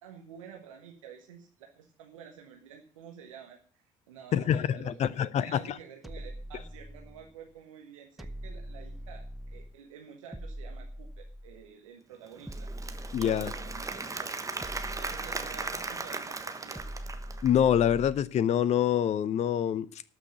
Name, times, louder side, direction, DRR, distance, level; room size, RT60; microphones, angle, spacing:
voice 1, 0.0-12.7 13.2-14.3 14.9-16.8, right 8 dB, 75° right, 2 dB, 1.4 m, -50 dB
voice 2, 4.3-5.8 13.1-13.5 17.4-20.0, left 9 dB, 40° left, 19 dB, 0.6 m, -26 dB
sound 1, 6.0-7.4 8.2-9.8 10.3-11.7 12.5-14.1 14.6-16.0 16.7-18.4, equal, ahead, 0.8 m, -42 dB
Applause / Crowd, 12.3-17.7, right 3 dB, 20° right, 1.3 m, -37 dB
12.5 x 6.1 x 8.0 m, 0.43 s
figure-of-eight pair, 50°, 17 cm